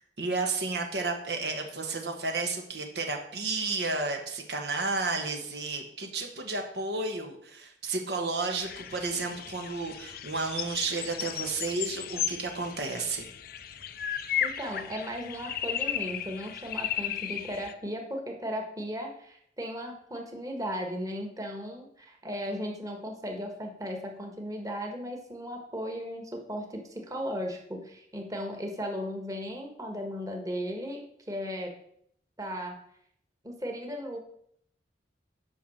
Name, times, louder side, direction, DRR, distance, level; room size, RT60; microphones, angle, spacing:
voice 1, 0.2-13.3, right 3 dB, 65° right, 3 dB, 1.4 m, -32 dB
sound 1, 8.6-17.7, left 10 dB, 55° left, 0.6 m, -35 dB
voice 2, 14.4-31.0 31.3-31.7 32.4-32.8 33.4-34.2, equal, 20° right, 2 dB, 1.6 m, -36 dB
9.4 x 5.9 x 6.4 m, 0.70 s
head